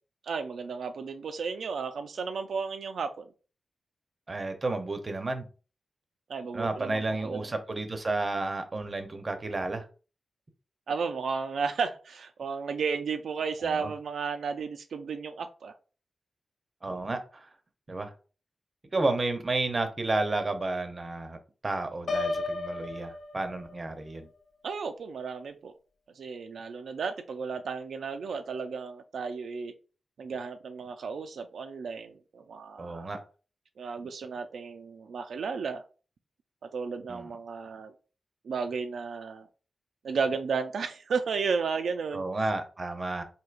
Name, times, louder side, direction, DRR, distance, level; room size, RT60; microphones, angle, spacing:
voice 1, 0.2-3.3 6.3-7.4 10.9-15.7 24.6-25.7 26.2-29.7 30.2-33.1 33.8-35.8 36.7-37.9 38.4-39.5 40.0-42.3, right 5 dB, 85° right, 0.3 m, -33 dB
voice 2, 4.3-5.5 6.5-9.9 13.6-13.9 16.8-17.5 17.9-18.1 18.9-21.4 21.6-24.3 32.8-33.2 37.1-37.4 42.1-43.2, right 2 dB, 30° right, 0.5 m, -31 dB
Piano, 22.1-24.0, left 3 dB, 60° left, 0.5 m, -33 dB
4.4 x 2.7 x 2.4 m
wide cardioid pair, 135°, 0 cm